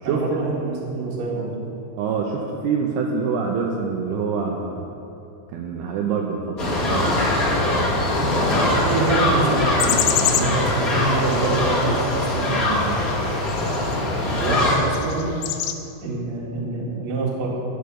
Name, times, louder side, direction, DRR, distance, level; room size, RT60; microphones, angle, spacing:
voice 1, 0.0-1.6 8.7-13.1 14.4-15.3 16.0-17.5, right 3 dB, 45° right, -4 dB, 2.5 m, -25 dB
voice 2, 2.0-4.9 5.5-7.2 7.9-8.6, right 5 dB, 85° right, 0 dB, 2.4 m, -26 dB
sound 1, 6.6-14.8, left 1 dB, 40° left, 1.2 m, -22 dB
sound 2, 8.7-15.7, left 11 dB, 80° left, 2.9 m, -30 dB
13.5 x 6.6 x 6.5 m, 2.7 s
omnidirectional pair, 5.5 m